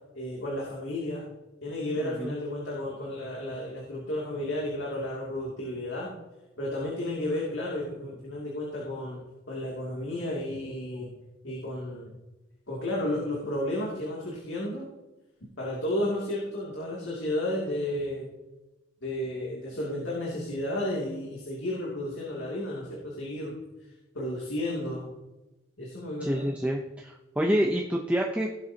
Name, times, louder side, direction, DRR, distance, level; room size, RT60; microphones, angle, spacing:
voice 1, 0.1-1.2 1.6-6.1 6.6-11.1 11.4-12.1 12.7-14.9 15.6-18.3 19.0-23.5 24.1-25.1 25.8-26.5, left 1 dB, 85° left, -4 dB, 2.8 m, -32 dB
voice 2, 2.0-2.3 26.2-28.5, equal, 5° right, -1 dB, 0.8 m, -27 dB
17.5 x 7.9 x 2.9 m, 1.0 s
head